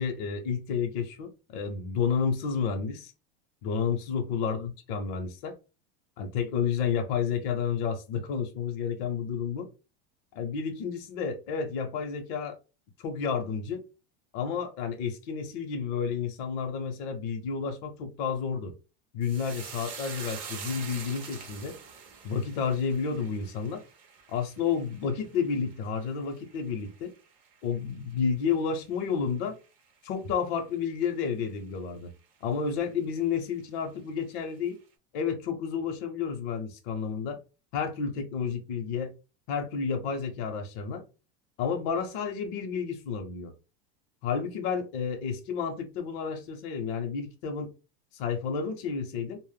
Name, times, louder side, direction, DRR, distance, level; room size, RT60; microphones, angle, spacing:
voice 1, 0.0-3.1 3.6-5.6 6.2-9.7 10.3-12.5 13.0-13.8 14.3-18.7 19.1-21.8 22.2-23.8 24.3-27.1 27.6-29.5 30.0-32.1 32.4-34.8 35.1-37.4 37.7-39.1 39.5-41.0 41.6-43.5 44.2-47.7 48.1-49.4, left 6 dB, 50° left, 0.6 m, -31 dB
sound 1, 19.2-27.8 28.1-28.8 29.1-29.3, right 6 dB, 30° right, 0.4 m, -45 dB
2.0 x 2.0 x 3.2 m
supercardioid pair, 155°, 31 cm